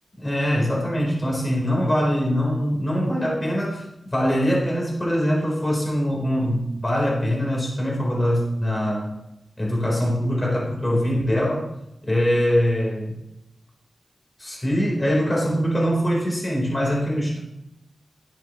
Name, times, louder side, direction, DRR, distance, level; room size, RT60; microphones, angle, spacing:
voice 1, 0.2-9.1 9.6-11.7 12.0-13.2 14.4-17.4, equal, 25° left, -3 dB, 3.9 m, -23 dB
11.5 x 10.5 x 3.1 m, 0.85 s
wide cardioid pair, 95°, 0 cm